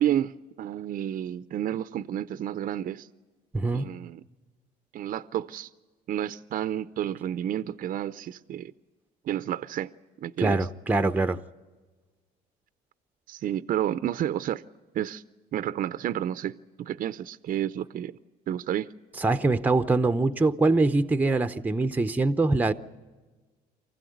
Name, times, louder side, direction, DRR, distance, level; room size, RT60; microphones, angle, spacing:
voice 1, 0.0-3.1 3.7-4.2 4.9-5.7 6.1-8.7 9.2-9.9 10.2-10.6 13.3-14.6 14.9-15.2 15.5-18.2 18.5-18.9, right 11 dB, 55° right, 0.6 m, -30 dB
voice 2, 3.5-3.9 10.4-11.4 19.2-22.7, right 3 dB, 10° right, 0.7 m, -23 dB
24.5 x 15.5 x 9.3 m
cardioid pair, 110°, 17 cm